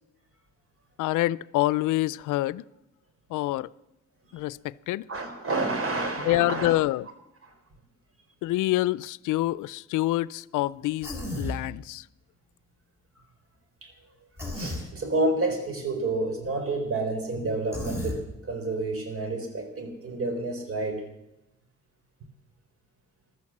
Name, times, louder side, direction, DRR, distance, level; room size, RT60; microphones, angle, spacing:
voice 1, 1.0-2.6 3.3-3.7 4.3-5.1 6.3-7.1 8.4-12.0, left 16 dB, 85° left, 0.5 m, -26 dB
voice 2, 5.1-6.8 7.4-7.5 13.8-13.9 14.5-18.2 18.5-21.0, right 2 dB, 50° right, 4.2 m, -29 dB
Human voice, 11.0-11.6 14.4-14.9 17.7-18.2, left 1 dB, 10° right, 5.3 m, -33 dB
15.0 x 12.5 x 7.3 m
cardioid pair, 90°, 30 cm